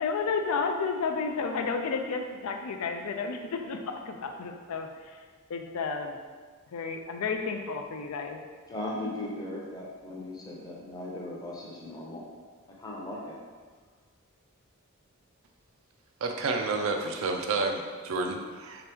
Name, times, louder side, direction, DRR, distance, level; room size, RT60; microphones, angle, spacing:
voice 1, 0.0-5.2 5.5-6.1 6.7-8.4, left 5 dB, 85° left, 4 dB, 0.4 m, -32 dB
voice 2, 8.7-12.3 12.7-13.4, left 1 dB, 15° left, -4 dB, 0.6 m, -38 dB
voice 3, 16.2-18.8, right 3 dB, 65° right, 3 dB, 0.4 m, -30 dB
3.3 x 2.9 x 3.4 m, 1.5 s
head